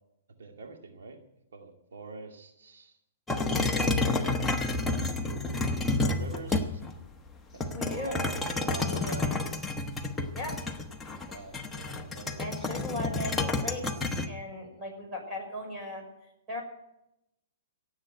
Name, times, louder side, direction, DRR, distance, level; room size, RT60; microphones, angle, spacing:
voice 1, 0.4-1.2 1.5-3.0 3.8-4.4 5.0-6.8 7.5-9.5 11.3-12.5, right 3 dB, 80° right, 3 dB, 2.2 m, -44 dB
sound 1, 3.3-7.0 7.6-14.3, left 3 dB, 5° left, 1.1 m, -30 dB
voice 2, 7.7-8.2 10.3-10.6 12.4-13.9 14.2-16.0 16.5-16.6, left 1 dB, 15° right, 0 dB, 6.0 m, -37 dB
17.5 x 7.9 x 9.2 m, 0.85 s
hypercardioid pair, 145°, 0 cm